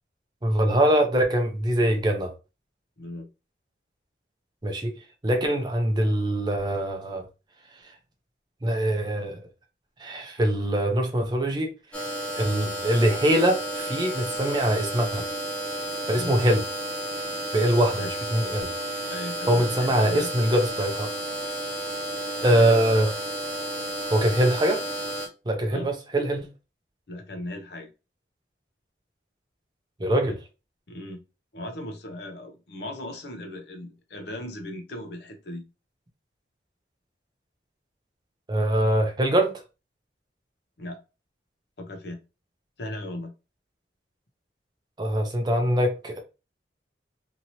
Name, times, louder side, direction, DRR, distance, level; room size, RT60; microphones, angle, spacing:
voice 1, 0.4-2.3 4.6-4.9 5.2-7.2 8.6-9.4 10.0-11.7 12.4-15.2 16.1-16.6 17.5-18.7 19.5-21.1 22.4-23.1 24.1-24.8 25.5-26.5 30.0-30.4 38.5-39.6 45.0-46.2, right 1 dB, 25° right, 0.5 m, -23 dB
voice 2, 3.0-3.3 16.2-16.3 18.0-18.1 19.1-20.3 25.7-25.9 27.1-27.9 30.9-31.2 31.5-35.7 40.8-41.0 41.8-42.2 42.8-43.3, left 1 dB, 70° left, 0.7 m, -37 dB
sound 1, 11.9-25.3, right 1 dB, 5° left, 1.0 m, -32 dB
2.8 x 2.8 x 2.7 m
head